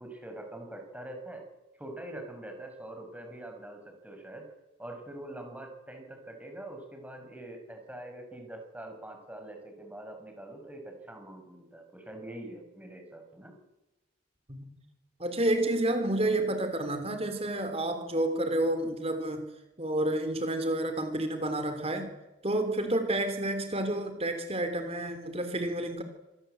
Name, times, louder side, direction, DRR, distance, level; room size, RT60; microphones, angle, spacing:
voice 1, 0.0-1.4 1.8-4.4 4.8-13.6, right 1 dB, 5° right, 4 dB, 5.9 m, -44 dB
voice 2, 15.2-19.5 19.8-22.1 22.4-26.0, right 1 dB, 30° right, 8 dB, 3.3 m, -30 dB
27.0 x 19.0 x 8.0 m, 1.0 s
head